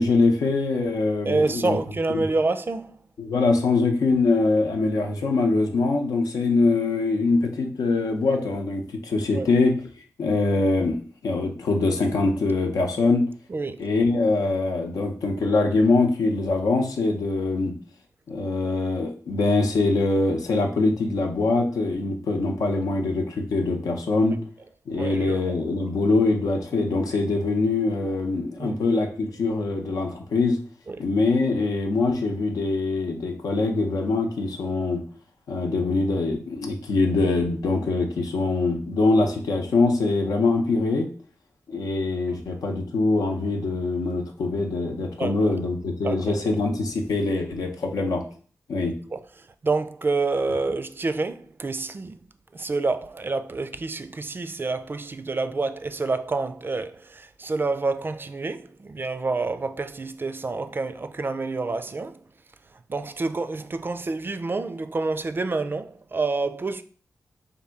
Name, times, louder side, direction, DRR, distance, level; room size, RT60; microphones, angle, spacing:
voice 1, 0.0-1.8 2.1-2.3 3.2-9.8 10.2-13.3 13.8-17.7 18.3-24.4 24.9-30.6 31.0-35.0 35.5-41.1 41.7-48.2 48.7-48.9, left 3 dB, 90° left, 0.7 m, -23 dB
voice 2, 1.3-2.9 9.3-9.5 13.5-13.8 24.9-25.6 28.6-28.8 30.9-31.0 45.2-45.5 46.0-46.4 49.1-49.2 49.6-52.2 52.5-62.2 62.9-66.8, right 3 dB, 35° right, 0.4 m, -28 dB
3.6 x 2.6 x 4.4 m
cardioid pair, 60°, 6 cm